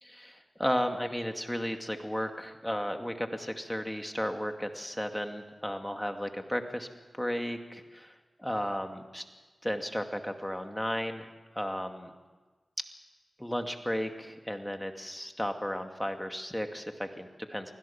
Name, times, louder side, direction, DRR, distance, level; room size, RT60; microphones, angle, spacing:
voice 1, 0.0-6.9 7.1-9.2 9.6-12.1 13.4-17.7, equal, 5° left, 5 dB, 2.3 m, -34 dB
24.5 x 16.5 x 7.2 m, 1.3 s
cardioid pair, 50°, 0 cm